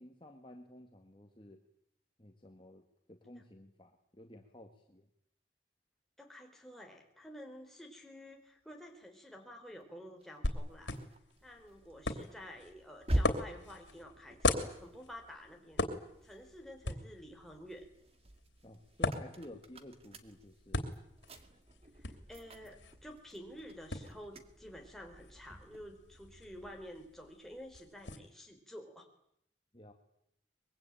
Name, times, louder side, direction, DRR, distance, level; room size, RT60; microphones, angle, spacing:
voice 1, 0.0-1.6 2.2-5.1 18.6-20.9 29.7-29.9, left 1 dB, 25° left, 3 dB, 1.9 m, -53 dB
voice 2, 6.2-10.9 11.4-15.9 16.2-17.9 22.0-29.1, equal, ahead, 1 dB, 4.3 m, -50 dB
sound 1, 10.2-16.7 17.2-27.0, equal, 35° right, 2.0 m, -44 dB
sound 2, 10.4-28.2, left 2 dB, 80° left, 3.1 m, -40 dB
24.0 x 22.5 x 9.1 m, 0.76 s
head